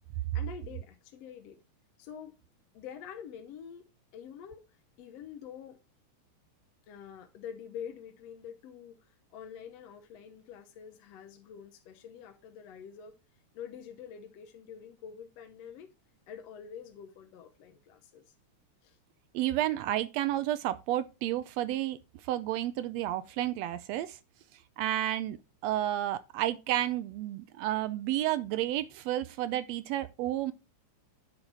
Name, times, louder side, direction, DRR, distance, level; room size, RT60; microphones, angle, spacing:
voice 1, 0.3-1.6 2.0-2.4 2.7-3.9 4.1-4.7 5.0-5.8 6.9-13.2 13.5-15.9 16.3-18.3 18.8-19.0, left 8 dB, 70° left, 1.8 m, -46 dB
voice 2, 19.3-24.2 24.8-25.4 25.6-30.5, right 13 dB, 75° right, 1.6 m, -31 dB
9.0 x 5.5 x 4.5 m
omnidirectional pair, 3.3 m